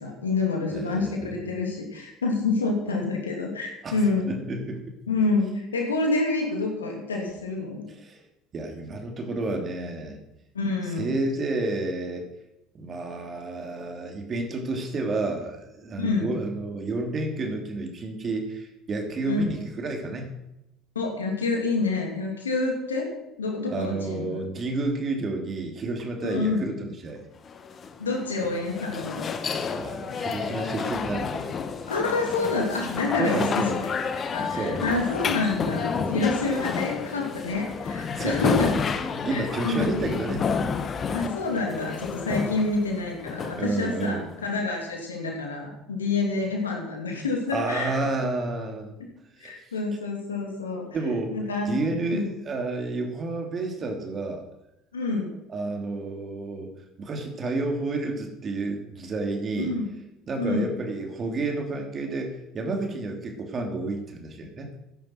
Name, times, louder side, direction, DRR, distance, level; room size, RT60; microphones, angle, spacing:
voice 1, 0.0-4.3 5.1-7.8 10.5-11.1 16.0-16.3 19.2-19.5 20.9-23.1 23.4-24.4 26.2-26.7 28.0-29.3 31.9-33.9 34.3-38.7 39.3-39.9 41.1-47.9 49.4-50.9 51.3-51.8 52.1-52.3 54.9-55.4 59.6-59.9 60.4-60.7, left 3 dB, 85° left, 1 dB, 2.9 m, -27 dB
voice 2, 0.7-1.3 3.8-4.0 4.3-5.0 7.9-8.2 8.5-10.2 10.8-12.3 12.7-20.4 23.7-27.2 29.7-31.6 33.2-33.8 34.5-34.8 36.0-36.5 38.2-38.4 39.1-40.6 43.5-44.3 47.5-48.9 49.4-49.6 50.9-51.4 51.6-54.4 55.5-56.7 57.0-59.7 60.3-64.7, right 2 dB, 35° right, 3 dB, 3.1 m, -30 dB
sound 1, 27.5-44.5, left 5 dB, 35° left, 1.2 m, -30 dB
14.5 x 11.0 x 4.6 m, 0.88 s
figure-of-eight pair, 65°, 0 cm